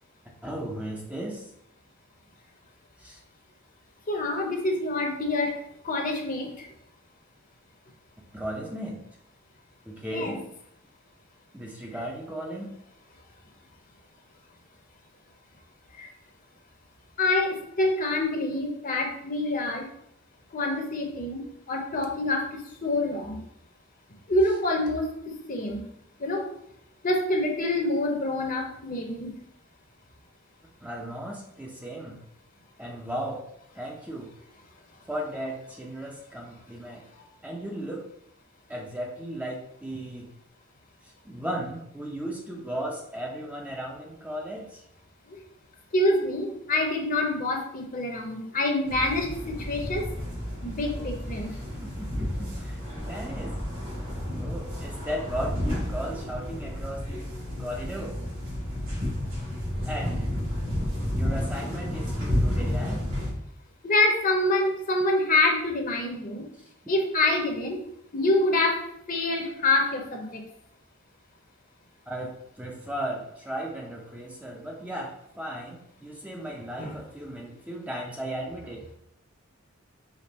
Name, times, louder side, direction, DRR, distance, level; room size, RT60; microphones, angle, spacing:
voice 1, 0.4-1.5 3.0-3.2 8.3-9.0 9.9-10.4 11.5-12.7 30.8-32.2 32.8-33.5 33.8-34.3 35.1-37.1 37.4-38.1 38.7-40.3 41.2-44.8 51.4-53.6 54.4-57.3 57.6-58.2 59.8-60.3 61.1-63.0 72.1-78.8, right 1 dB, 5° right, -1 dB, 0.6 m, -36 dB
voice 2, 4.1-5.6 5.8-6.7 10.1-10.3 16.0-16.1 17.2-19.9 20.5-23.4 24.3-25.8 26.2-26.4 27.0-29.3 45.3-45.4 45.9-50.1 50.6-51.5 63.8-66.5 66.9-67.8 68.1-68.8 69.1-70.4 76.8-76.9, left 2 dB, 40° left, 2 dB, 0.8 m, -26 dB
sound 1, 48.9-63.3, left 1 dB, 75° right, 1.8 m, -31 dB
5.1 x 2.4 x 4.2 m, 0.74 s
head